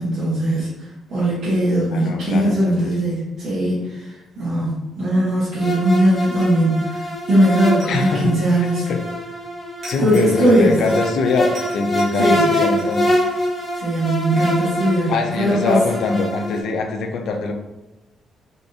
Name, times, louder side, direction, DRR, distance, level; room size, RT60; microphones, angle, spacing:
voice 1, 0.0-8.9 10.0-10.8 12.2-12.5 13.7-15.8, right 1 dB, 80° right, -12 dB, 1.2 m, -19 dB
voice 2, 1.9-2.9 7.9-8.3 8.9-9.0 9.9-13.2 15.1-17.5, left 3 dB, 70° left, 4 dB, 0.4 m, -23 dB
sound 1, 5.5-16.6, left 1 dB, 25° left, 1.4 m, -24 dB
sound 2, 6.3-6.9 7.8-9.1 9.8-11.2 11.5-13.7, right 1 dB, 55° right, 1.5 m, -42 dB
3.7 x 2.4 x 2.7 m, 1.0 s
cardioid pair, 90°, 0 cm